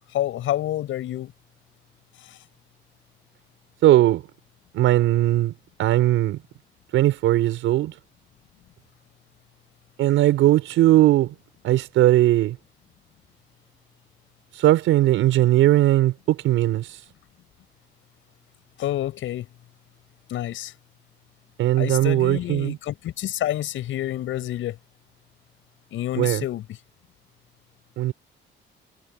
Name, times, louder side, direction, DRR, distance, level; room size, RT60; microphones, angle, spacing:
voice 1, 0.1-1.3 2.2-2.4 18.8-19.5 20.3-20.7 21.8-24.8 25.9-26.8, left 13 dB, 80° left, 7.5 m, -28 dB
voice 2, 3.8-4.2 4.7-5.5 5.8-6.4 6.9-7.9 10.0-11.3 11.6-12.6 14.6-17.0 21.6-22.8 26.2-26.4 28.0-28.1, right 14 dB, 90° right, 5.2 m, -19 dB
cardioid pair, 90°, 20 cm